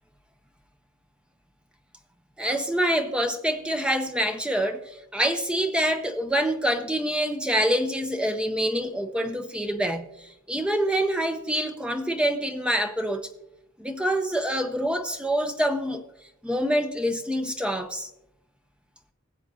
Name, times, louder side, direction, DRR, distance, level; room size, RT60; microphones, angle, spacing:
voice 1, 2.4-13.3 13.8-16.0 16.4-18.1, equal, 5° right, 0.6 m, -26 dB
19.5 x 7.7 x 2.8 m
head